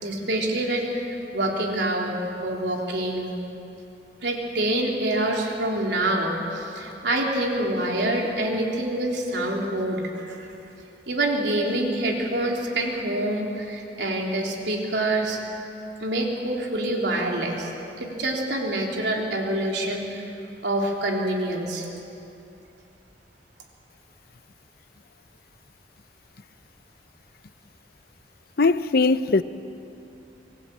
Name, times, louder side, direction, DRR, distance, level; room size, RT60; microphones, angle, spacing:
voice 1, 0.0-3.3 4.2-10.5 11.1-15.4 16.0-17.7 18.0-20.2 20.6-21.9, right 1 dB, 80° right, 3.5 m, -26 dB
voice 2, 28.6-29.4, left 3 dB, 60° left, 0.7 m, -20 dB
24.5 x 17.5 x 8.8 m
head